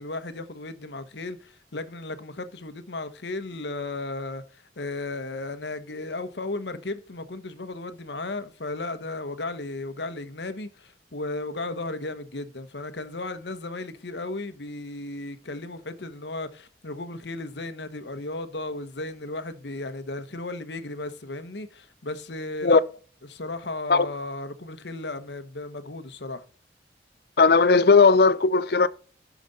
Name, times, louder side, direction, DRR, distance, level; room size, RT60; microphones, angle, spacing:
voice 1, 0.0-22.8 23.2-26.4, left 2 dB, 80° left, 1.0 m, -35 dB
voice 2, 27.4-28.9, left 4 dB, 60° left, 0.5 m, -17 dB
12.0 x 5.1 x 4.0 m
head